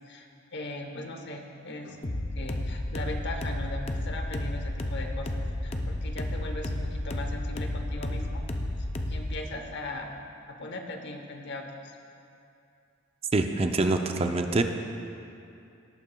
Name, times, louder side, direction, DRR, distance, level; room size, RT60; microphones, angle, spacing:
voice 1, 0.1-8.4 8.8-10.1 10.5-11.9, left 2 dB, 55° left, 4 dB, 0.9 m, -39 dB
sound 1, 2.0-9.4, left 1 dB, 30° left, 0.5 m, -32 dB
voice 2, 13.3-14.6, right 2 dB, 30° right, 6 dB, 0.5 m, -25 dB
18.0 x 8.7 x 2.3 m, 2.6 s
head